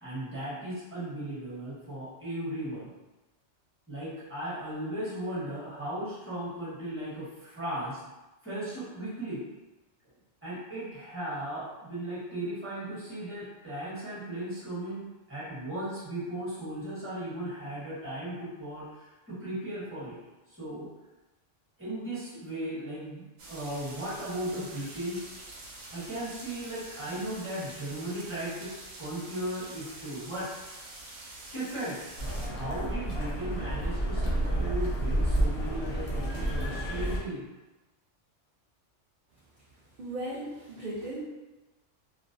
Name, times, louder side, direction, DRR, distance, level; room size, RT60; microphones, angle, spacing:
voice 1, 0.0-2.9 3.9-8.0 8.4-9.4 10.4-20.2 20.5-20.9 21.8-25.3 25.9-28.7 29.0-30.5 31.5-32.0 32.5-37.5, right 1 dB, 10° right, -10 dB, 0.9 m, -36 dB
sound 1, 23.4-32.5, right 2 dB, 90° right, 0.9 m, -46 dB
sound 2, 32.2-37.2, right 1 dB, 65° left, 0.7 m, -30 dB
voice 2, 40.0-41.2, right 1 dB, 55° right, -8 dB, 0.5 m, -36 dB
2.4 x 2.0 x 2.5 m, 1.1 s
omnidirectional pair, 1.2 m